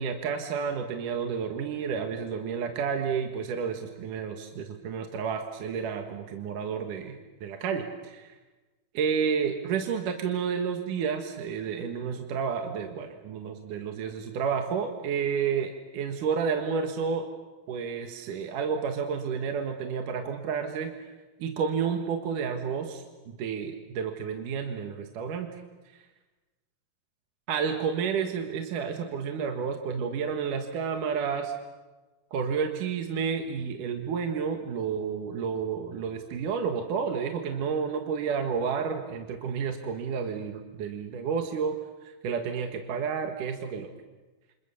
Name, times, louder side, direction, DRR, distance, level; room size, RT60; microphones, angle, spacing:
voice 1, 0.0-8.4 8.9-17.3 17.7-20.9 21.4-25.5 27.5-31.5 32.3-41.8 42.0-43.9, right 6 dB, 65° right, 4 dB, 2.9 m, -30 dB
29.0 x 28.0 x 7.1 m, 1.2 s
omnidirectional pair, 4.4 m